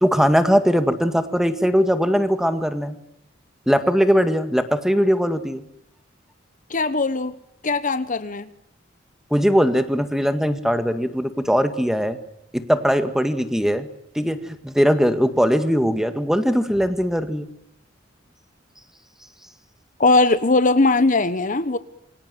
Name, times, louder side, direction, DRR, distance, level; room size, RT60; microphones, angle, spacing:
voice 1, 0.0-3.0 3.7-5.6 9.3-12.2 12.5-13.9 14.2-17.5, equal, 5° right, 1.9 m, -20 dB
voice 2, 6.7-7.4 7.6-8.5 20.0-21.8, left 3 dB, 45° left, 1.2 m, -19 dB
27.5 x 24.0 x 7.8 m
head